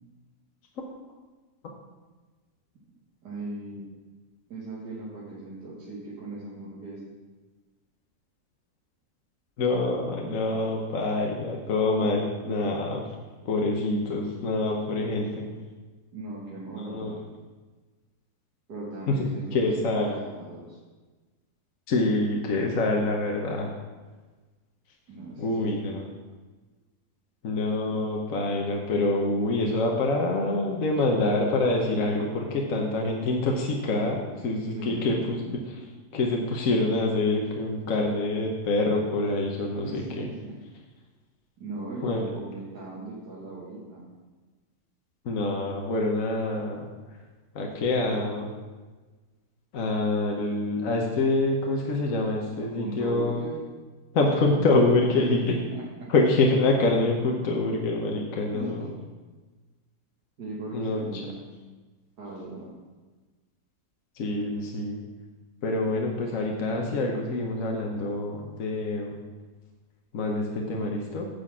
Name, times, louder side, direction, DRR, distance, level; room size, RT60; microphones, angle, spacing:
voice 1, 3.2-3.9 4.5-7.1 16.1-17.2 18.7-20.8 25.1-25.9 34.7-35.5 39.8-40.5 41.6-44.1 52.6-53.6 55.3-55.4 55.7-56.1 58.5-58.9 60.4-61.4 62.2-62.7, right 2 dB, 80° right, -6 dB, 2.2 m, -38 dB
voice 2, 9.6-13.0 13.4-15.5 16.8-17.2 19.1-20.1 21.9-23.7 25.4-26.1 27.4-35.7 36.1-40.3 42.0-42.2 45.2-46.9 47.5-48.5 49.7-53.4 54.1-55.6 56.1-58.9 60.7-61.2 64.2-65.0 65.6-69.2 70.1-71.3, left 2 dB, 60° left, 0 dB, 1.3 m, -26 dB
10.0 x 4.2 x 7.4 m, 1.3 s
omnidirectional pair, 1.7 m